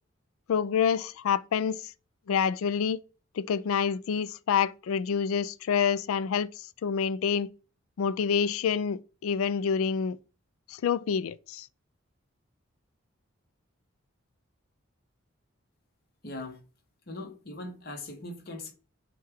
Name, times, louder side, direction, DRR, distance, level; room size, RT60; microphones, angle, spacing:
voice 1, 0.5-1.8 2.3-3.0 3.4-6.5 6.8-7.5 8.0-10.2 10.7-11.7, left 7 dB, 80° left, 0.3 m, -27 dB
voice 2, 16.2-16.6 17.1-18.7, left 2 dB, 45° left, 1.0 m, -40 dB
6.3 x 2.3 x 3.5 m
head